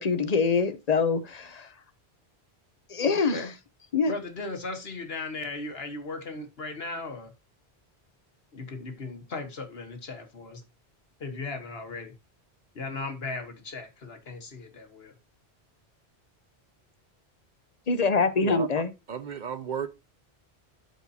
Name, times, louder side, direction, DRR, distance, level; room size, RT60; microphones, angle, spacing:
voice 1, 0.0-1.7 2.9-3.4 3.9-4.1 17.9-18.9, left 4 dB, 40° left, 0.9 m, -24 dB
voice 2, 3.0-3.5 4.0-7.3 8.5-10.6 11.2-12.1 12.7-15.1, left 3 dB, 70° left, 1.6 m, -37 dB
voice 3, 18.4-19.9, right 7 dB, 55° right, 0.7 m, -34 dB
12.5 x 4.6 x 2.8 m
omnidirectional pair, 1.1 m